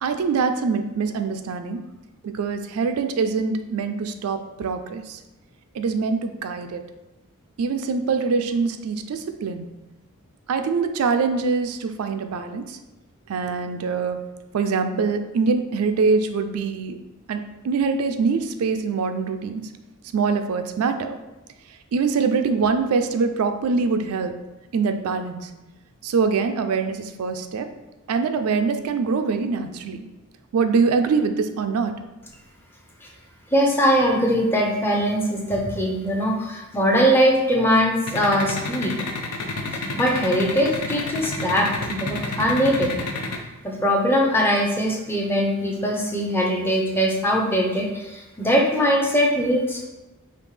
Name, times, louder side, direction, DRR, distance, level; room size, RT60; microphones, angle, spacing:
voice 1, 0.0-1.8 2.2-5.2 5.7-6.8 7.6-9.7 10.5-12.8 13.3-14.2 14.5-17.0 17.3-19.7 20.1-21.2 21.9-24.4 24.7-25.5 26.0-27.7 28.1-30.1 30.5-31.9, right 5 dB, 75° right, 7 dB, 0.4 m, -24 dB
voice 2, 33.5-38.9 39.9-42.9 43.6-49.9, equal, 10° left, 0 dB, 0.5 m, -21 dB
sound 1, 38.1-43.4, left 3 dB, 90° left, 0.6 m, -29 dB
5.1 x 2.8 x 3.2 m, 1.0 s
head